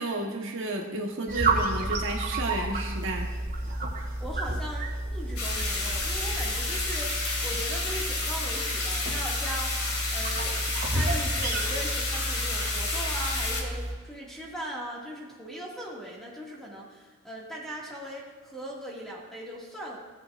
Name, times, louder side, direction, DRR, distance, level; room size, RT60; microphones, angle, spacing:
voice 1, 0.0-3.3, right 2 dB, 60° right, 1 dB, 1.2 m, -32 dB
sound 1, 1.3-13.9, right 2 dB, 40° right, 2.1 m, -31 dB
voice 2, 4.2-20.0, right 1 dB, ahead, -4 dB, 2.0 m, -39 dB
sound 2, 5.4-13.6, left 3 dB, 80° left, 2.2 m, -31 dB
16.5 x 8.3 x 2.5 m, 1.5 s
head